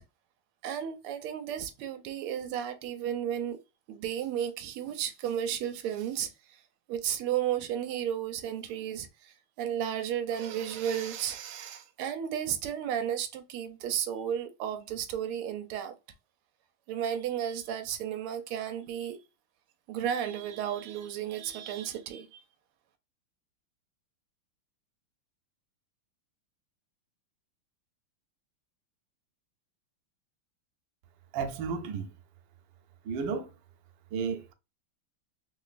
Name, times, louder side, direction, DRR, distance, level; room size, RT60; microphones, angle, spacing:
voice 1, 0.6-3.6 3.9-6.6 6.9-15.9 16.9-19.2 19.9-22.4, right 9 dB, 90° right, 1.5 m, -33 dB
voice 2, 31.3-32.1 33.0-33.5 34.1-34.5, right 5 dB, 70° right, 1.3 m, -33 dB
3.7 x 3.0 x 2.4 m
omnidirectional pair, 2.4 m